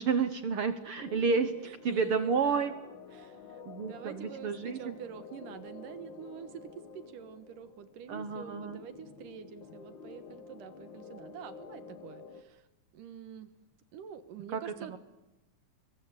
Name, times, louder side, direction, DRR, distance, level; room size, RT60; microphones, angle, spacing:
voice 1, 0.0-1.5 1.8-2.7 3.6-4.8 8.1-8.8 14.5-15.0, right 5 dB, 60° right, 10 dB, 1.6 m, -30 dB
sound 1, 1.0-12.4, left 5 dB, 50° left, 1.6 m, -50 dB
voice 2, 1.7-2.7 3.1-12.7 12.9-13.5 13.9-15.0, right 8 dB, 85° right, 11 dB, 3.0 m, -46 dB
26.5 x 22.5 x 8.1 m, 0.97 s
omnidirectional pair, 3.7 m